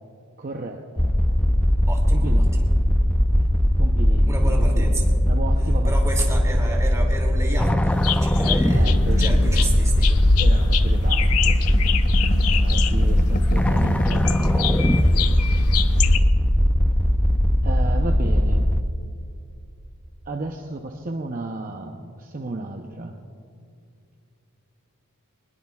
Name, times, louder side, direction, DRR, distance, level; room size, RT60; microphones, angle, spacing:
voice 1, 0.4-1.1 2.1-2.7 3.8-6.1 8.4-9.6 10.4-11.9 12.5-15.4 17.6-18.6 20.3-23.2, right 2 dB, 40° right, 3 dB, 0.7 m, -33 dB
sound 1, 1.0-18.8, equal, 5° left, 0.4 m, -19 dB
voice 2, 1.9-2.7 4.3-5.1 5.8-10.2, right 1 dB, 15° right, -1 dB, 2.6 m, -32 dB
sound 2, 7.9-16.2, left 5 dB, 80° left, 0.6 m, -26 dB
sound 3, 10.2-14.8 15.1-15.2 15.5-16.1, left 2 dB, 40° left, 0.7 m, -35 dB
22.0 x 20.5 x 2.4 m, 2.5 s
head